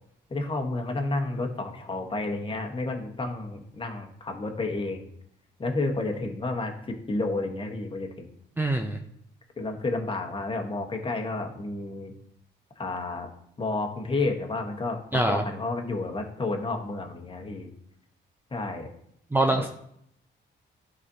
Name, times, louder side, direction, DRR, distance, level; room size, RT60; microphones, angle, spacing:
voice 1, 0.3-5.1 5.6-8.3 9.6-12.1 12.8-13.3 13.6-17.7 18.5-18.9 19.5-19.7, left 2 dB, 25° left, 2 dB, 1.3 m, -31 dB
voice 2, 8.6-9.0 15.1-15.4 19.3-19.7, right 1 dB, 10° right, 4 dB, 0.5 m, -24 dB
11.0 x 4.1 x 2.8 m, 0.73 s
cardioid pair, 90°, 20 cm